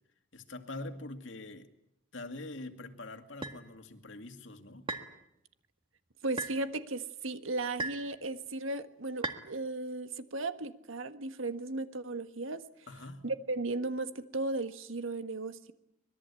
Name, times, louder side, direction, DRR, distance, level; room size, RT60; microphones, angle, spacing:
voice 1, 0.3-1.7 2.1-4.9 12.9-13.2, left 2 dB, 65° left, 7 dB, 2.3 m, -44 dB
sound 1, 3.4-3.6 4.9-5.1 6.4-6.6 7.8-8.1 9.2-9.4, right 2 dB, 25° right, 1.7 m, -36 dB
voice 2, 6.2-12.6 13.2-15.7, right 2 dB, 85° right, 10 dB, 1.6 m, -36 dB
25.5 x 21.0 x 8.4 m, 0.79 s
head